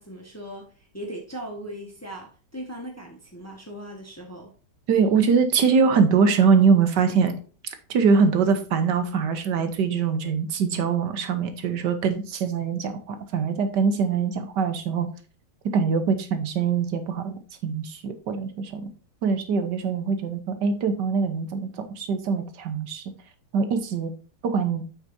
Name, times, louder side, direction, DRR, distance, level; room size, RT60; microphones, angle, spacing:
voice 1, 0.0-4.5, right 1 dB, 10° left, 1.4 m, -38 dB
voice 2, 4.9-7.3 7.6-15.1 15.7-17.3 17.6-18.9 19.2-23.0 23.5-24.1 24.4-24.8, right 5 dB, 75° right, 1.6 m, -23 dB
8.0 x 6.3 x 2.7 m
omnidirectional pair, 1.9 m